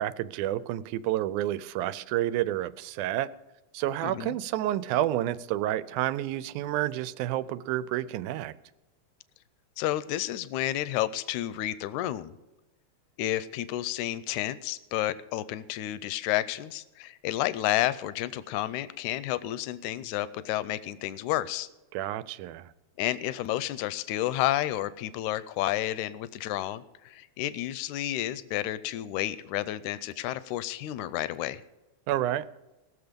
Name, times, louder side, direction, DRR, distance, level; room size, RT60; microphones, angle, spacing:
voice 1, 0.0-3.3 3.7-8.5 21.9-22.7 32.1-32.5, right 13 dB, 90° right, 16 dB, 2.0 m, -29 dB
voice 2, 4.0-4.4 9.8-12.4 13.2-21.7 23.0-31.6, left 14 dB, 85° left, 16 dB, 1.9 m, -31 dB
19.5 x 7.0 x 5.1 m, 1.0 s
omnidirectional pair, 3.4 m